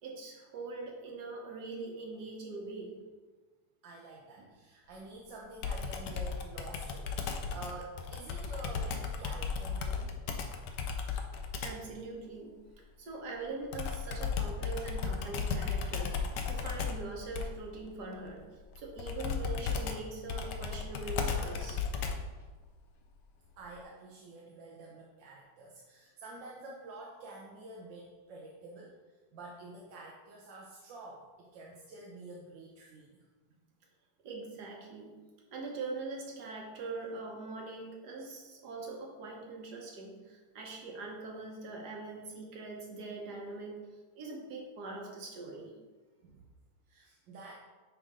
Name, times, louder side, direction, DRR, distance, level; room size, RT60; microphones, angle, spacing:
voice 1, 0.0-3.0 4.4-4.5 11.6-12.5 13.0-18.4 18.8-21.8 34.2-35.2 35.5-43.8 44.1-45.7, right 3 dB, 65° right, 0 dB, 1.6 m, -42 dB
voice 2, 3.8-10.1 23.6-28.9 29.3-33.3 46.2-46.5 46.9-47.5, right 2 dB, 85° right, -3 dB, 1.5 m, -48 dB
Computer keyboard, 5.6-11.9 13.7-22.4, left 5 dB, 75° left, 1.3 m, -35 dB
9.5 x 3.3 x 3.7 m, 1.3 s
omnidirectional pair, 1.9 m